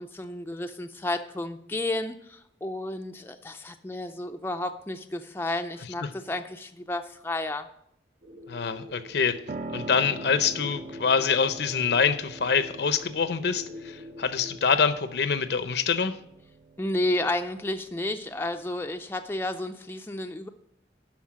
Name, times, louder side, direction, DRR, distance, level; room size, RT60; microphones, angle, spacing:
voice 1, 0.0-7.7 16.8-20.5, left 1 dB, 10° left, 6 dB, 0.4 m, -32 dB
sound 1, 8.2-14.6, left 2 dB, 90° right, 1.4 m, -45 dB
voice 2, 8.5-9.4 9.7-16.1, left 6 dB, 65° left, 12 dB, 0.6 m, -25 dB
Piano, 9.5-19.4, right 3 dB, 50° right, 0.6 m, -44 dB
12.0 x 4.4 x 7.4 m, 0.74 s
head